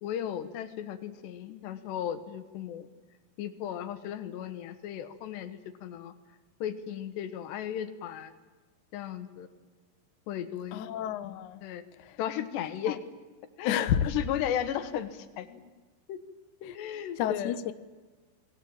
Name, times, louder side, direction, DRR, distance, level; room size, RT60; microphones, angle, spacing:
voice 1, 0.0-2.9 3.4-6.1 6.6-8.3 8.9-9.5 10.3-10.8 11.6-11.8 12.2-13.0 13.6-15.6 16.1-16.2 16.6-17.6, left 10 dB, 85° left, 3.7 m, -35 dB
voice 2, 10.7-11.6 12.0-12.2 12.9-13.0 13.6-14.1 16.6-16.8 17.2-17.7, left 10 dB, 70° left, 2.0 m, -30 dB
28.0 x 21.5 x 8.9 m
omnidirectional pair, 4.8 m